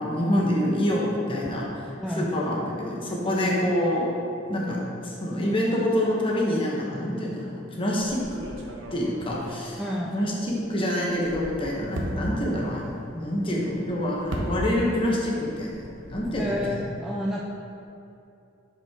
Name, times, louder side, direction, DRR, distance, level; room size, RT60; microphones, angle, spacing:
voice 1, 0.0-1.9 2.2-4.1 4.5-8.4 8.9-9.8 10.1-15.8 16.1-16.8, left 1 dB, 25° left, -4 dB, 1.0 m, -26 dB
voice 2, 2.0-2.3 3.4-3.5 9.8-10.2 16.3-17.4, equal, ahead, -4 dB, 0.3 m, -30 dB
sound 1, 8.0-10.7 11.0-15.1 15.4-16.7, right 1 dB, 65° right, 0.8 m, -37 dB
6.4 x 5.3 x 3.6 m, 2.6 s
head